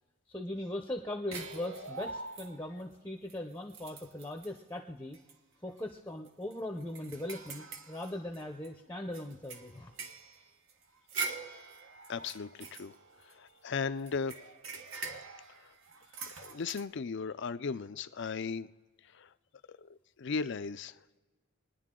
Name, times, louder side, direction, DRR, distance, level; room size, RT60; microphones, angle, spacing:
voice 1, 0.3-5.2 5.6-9.9, left 1 dB, 10° left, 0.7 m, -40 dB
sound 1, 1.3-2.8 3.3-3.4 3.7-4.6 5.1-5.3 5.7-5.8 6.3-8.7 9.1-13.6 14.1-16.8, right 4 dB, 60° right, 1.1 m, -43 dB
voice 2, 12.1-12.9 13.3-14.4 15.6-15.7 16.3-18.7 19.1-19.3 19.7-20.9, left 5 dB, 50° left, 0.4 m, -37 dB
26.0 x 10.0 x 3.7 m
head